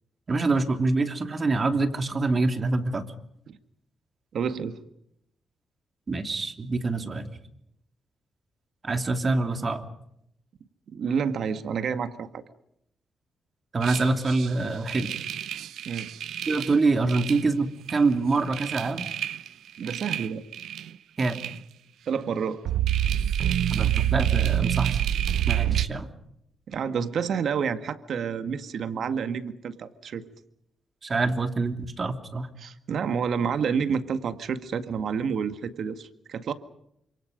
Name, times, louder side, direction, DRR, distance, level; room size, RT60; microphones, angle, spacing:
voice 1, 0.3-3.1 6.1-7.3 8.8-9.8 13.7-15.1 16.5-19.1 21.2-21.4 23.7-25.0 25.5-26.1 31.0-32.5, right 3 dB, 35° right, 7 dB, 2.9 m, -25 dB
voice 2, 4.3-4.8 10.9-12.4 15.9-16.1 19.8-20.4 22.1-22.6 25.6-25.8 26.7-30.2 32.6-36.5, right 6 dB, 70° right, 10 dB, 1.9 m, -29 dB
sound 1, 13.8-14.5 14.9-16.8 17.1-17.4 17.9-18.0 18.3-19.5 19.8-20.9 21.2-21.6 22.7-25.9, right 11 dB, 90° right, 0.9 m, -27 dB
29.5 x 26.5 x 5.3 m, 0.77 s
cardioid pair, 105°, 0 cm